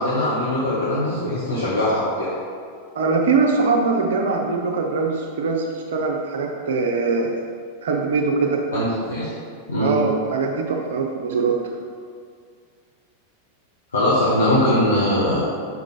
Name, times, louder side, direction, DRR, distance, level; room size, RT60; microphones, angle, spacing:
voice 1, 0.0-2.3 8.7-9.3 9.7-9.9 13.9-15.4, left 1 dB, 75° left, -10 dB, 1.3 m, -21 dB
voice 2, 2.9-7.3 7.8-8.6 9.8-11.6, right 4 dB, 60° right, 1 dB, 0.6 m, -22 dB
5.4 x 4.8 x 3.9 m, 2.1 s
figure-of-eight pair, 90°, 0 cm